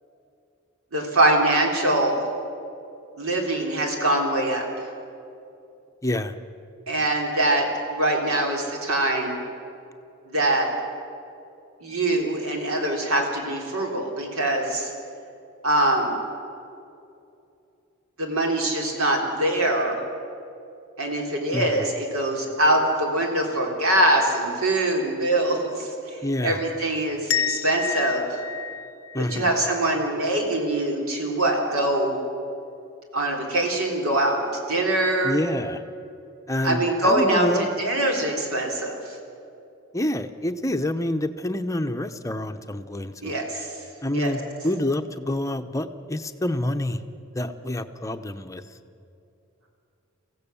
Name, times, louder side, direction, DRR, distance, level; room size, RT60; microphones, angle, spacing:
voice 1, 0.9-2.2 3.2-4.6 6.9-7.6 7.9-9.4 10.3-10.7 11.8-14.9 15.6-16.1 18.2-20.0 21.0-28.3 29.2-32.2 33.1-34.4 34.7-35.4 36.6-37.5 37.8-39.2 43.2-43.7 44.1-44.3, right 1 dB, 75° right, 1 dB, 3.6 m, -23 dB
voice 2, 6.0-6.3 21.5-21.8 26.2-26.6 29.1-29.5 35.2-35.8 36.5-37.7 39.9-43.3 44.0-47.0 47.3-48.6, left 1 dB, 15° left, 8 dB, 0.8 m, -27 dB
sound 1, 27.3-30.1, left 8 dB, 70° left, 0.6 m, -30 dB
24.0 x 16.0 x 7.0 m, 2.7 s
head